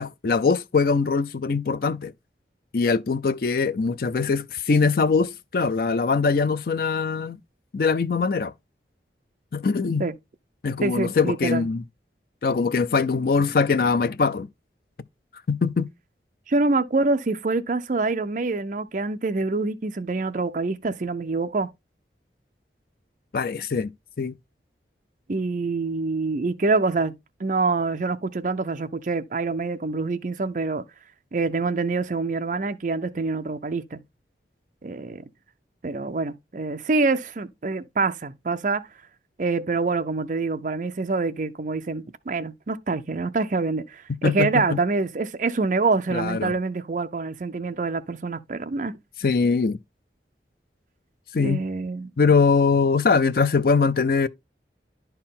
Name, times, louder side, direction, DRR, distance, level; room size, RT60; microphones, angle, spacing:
voice 1, 0.0-2.1 2.7-7.4 7.7-8.5 9.5-10.0 10.6-11.8 12.4-14.5 15.5-15.9 23.3-23.9 24.2-24.3 44.2-44.8 46.1-46.6 49.2-49.8 51.3-51.6 52.2-54.3, left 4 dB, 55° left, 0.4 m, -22 dB
voice 2, 10.8-11.7 16.5-21.7 25.3-30.8 31.3-34.0 34.8-35.2 35.8-38.8 39.4-48.9 51.4-52.1, right 3 dB, 45° right, 0.5 m, -26 dB
10.5 x 4.4 x 3.7 m
head